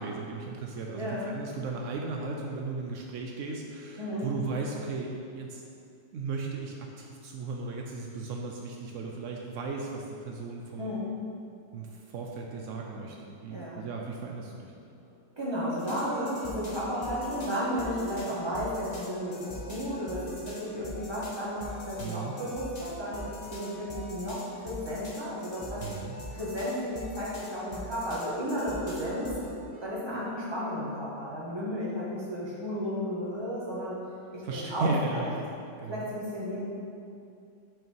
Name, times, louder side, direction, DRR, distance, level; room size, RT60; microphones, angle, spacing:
voice 1, 0.0-5.6 6.1-11.0 11.7-14.7 22.0-22.4 25.8-26.2 34.4-35.4 35.8-36.1, right 3 dB, 90° right, 0 dB, 0.6 m, -36 dB
voice 2, 4.0-4.3 10.8-11.1 13.5-13.8 15.4-25.8 26.3-29.3 29.8-34.0 34.3-35.2 35.9-36.6, equal, 15° right, -7 dB, 1.3 m, -33 dB
sound 1, 15.8-30.2, equal, 25° left, 1.0 m, -43 dB
5.6 x 5.5 x 4.5 m, 2.6 s
omnidirectional pair, 2.0 m